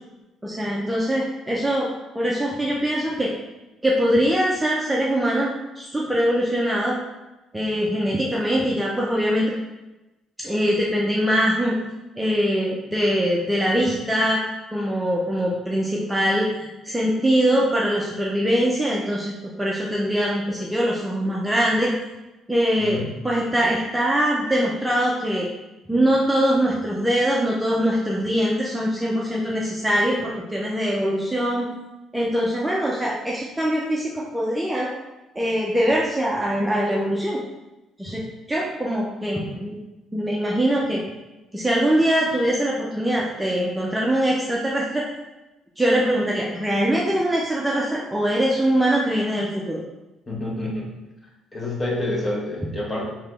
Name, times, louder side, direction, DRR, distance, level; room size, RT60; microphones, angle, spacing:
voice 1, 0.4-1.9 2.1-3.3 3.8-7.0 7.5-9.5 10.4-11.8 12.2-21.9 22.5-25.5 25.9-31.7 32.1-34.9 35.4-37.4 38.0-38.2 38.5-39.8 40.1-41.0 41.5-45.1 45.8-49.8, equal, 5° right, -4 dB, 0.5 m, -22 dB
voice 2, 50.3-50.9 51.5-53.1, left 1 dB, 20° left, -2 dB, 1.0 m, -28 dB
3.3 x 2.9 x 3.3 m, 1.0 s
cardioid pair, 100°, 0 cm